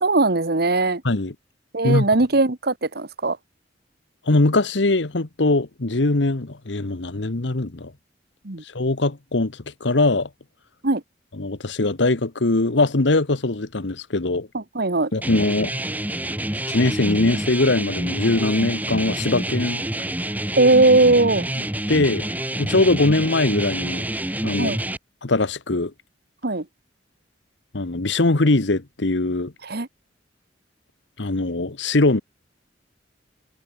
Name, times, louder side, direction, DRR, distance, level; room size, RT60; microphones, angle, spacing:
voice 1, 0.0-1.0 1.7-3.4 8.4-8.6 10.8-11.0 14.5-15.1 20.6-21.5 24.6-24.8 26.4-26.6 29.6-29.9, right 2 dB, 60° right, 1.5 m, -19 dB
voice 2, 4.3-7.9 8.7-10.3 11.4-14.5 15.1-15.7 16.7-19.8 21.9-22.3 22.6-24.0 24.4-24.8 25.2-25.9 27.7-29.5 31.2-32.2, left 2 dB, 75° left, 1.3 m, -21 dB
sound 1, 15.2-25.0, right 1 dB, 10° right, 2.4 m, -27 dB
head